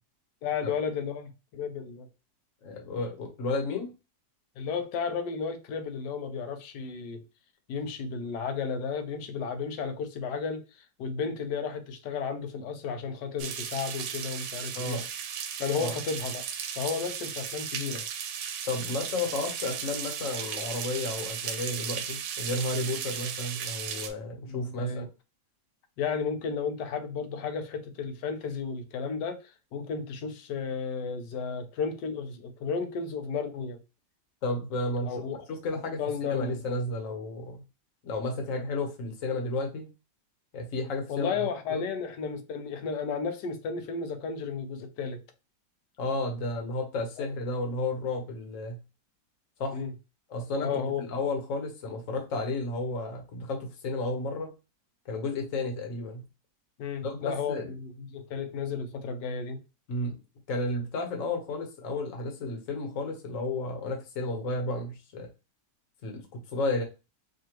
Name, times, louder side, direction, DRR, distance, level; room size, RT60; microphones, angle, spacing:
voice 1, 0.4-2.1 4.6-7.2 7.7-15.0 15.6-16.4 16.8-18.0 24.4-25.1 26.0-33.8 35.1-35.4 36.0-36.6 41.1-45.2 47.2-47.3 49.7-49.9 50.6-51.1 56.8-59.6, left 5 dB, 80° left, 1.3 m, -33 dB
voice 2, 2.6-3.9 14.7-15.0 15.7-15.9 18.7-25.1 34.4-35.2 35.5-37.6 38.0-39.9 40.5-41.4 41.7-41.8 46.0-48.8 49.6-49.8 50.3-54.5 55.0-56.2 57.0-57.7 59.9-60.2 60.5-65.3 66.0-66.8, left 2 dB, 55° left, 1.3 m, -32 dB
sound 1, 13.4-24.1, right 8 dB, 85° right, 1.3 m, -36 dB
4.9 x 2.4 x 2.9 m
omnidirectional pair, 1.9 m